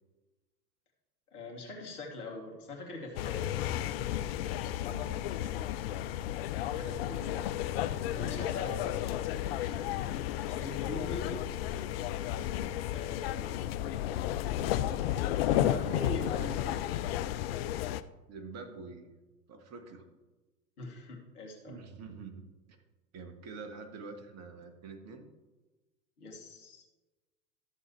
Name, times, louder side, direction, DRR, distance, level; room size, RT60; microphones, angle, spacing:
voice 1, 1.3-4.1 4.6-5.1 6.6-7.4 8.1-9.0 10.5-11.4 12.9-13.7 15.4-16.9 20.8-21.8 26.2-26.8, left 2 dB, 65° left, -1 dB, 2.7 m, -43 dB
sound 1, 3.2-18.0, left 12 dB, 40° left, 0.4 m, -33 dB
voice 2, 4.9-5.2 8.2-8.5 9.4-10.1 18.3-19.1 19.5-20.0 21.7-22.5 23.1-25.3, right 4 dB, 35° right, 6 dB, 1.6 m, -47 dB
14.0 x 7.4 x 3.2 m, 1.2 s
figure-of-eight pair, 90°, 49 cm